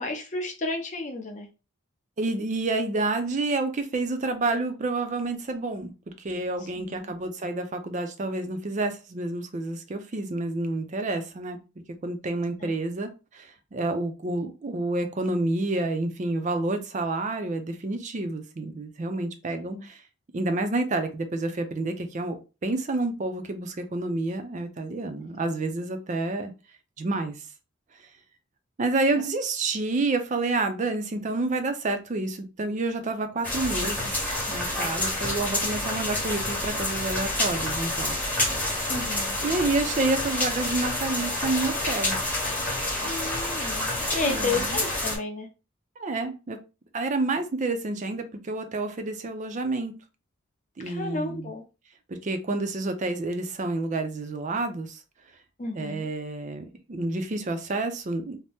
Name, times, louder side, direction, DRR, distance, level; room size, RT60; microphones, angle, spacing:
voice 1, 0.0-1.5 6.8-7.0 12.6-12.7 19.7-19.9 38.9-39.4 43.0-45.5 50.8-51.6 55.6-56.1, left 3 dB, 35° left, 2 dB, 0.6 m, -32 dB
voice 2, 2.2-5.9 6.2-11.6 12.0-20.0 20.3-26.5 27.0-27.4 28.8-38.2 39.4-42.2 44.2-44.7 46.0-46.6 46.9-49.9 50.8-51.5 52.1-55.0 55.7-58.4, right 2 dB, 35° right, 7 dB, 0.4 m, -29 dB
sound 1, 33.4-45.2, left 1 dB, 10° left, 0.8 m, -28 dB
2.7 x 2.0 x 3.3 m, 0.30 s
head